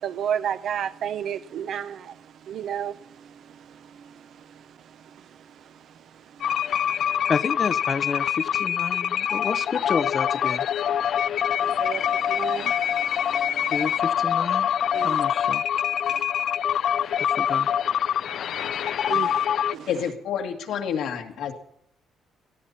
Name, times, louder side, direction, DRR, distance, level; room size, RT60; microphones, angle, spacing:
voice 1, 0.0-4.6 5.6-5.7 6.3-6.5 11.6-13.7 14.9-15.2 16.1-16.2 19.1-19.5 19.7-19.9, right 9 dB, 65° right, 0.8 m, -33 dB
sound 1, 6.4-19.8, left 9 dB, 65° left, 0.5 m, -25 dB
voice 2, 7.1-10.7 13.7-14.7 15.0-15.6 17.2-17.7, left 5 dB, 40° left, 0.7 m, -30 dB
voice 3, 19.9-21.5, left 8 dB, 80° left, 2.1 m, -29 dB
20.0 x 14.0 x 4.2 m
cardioid pair, 115°, 0 cm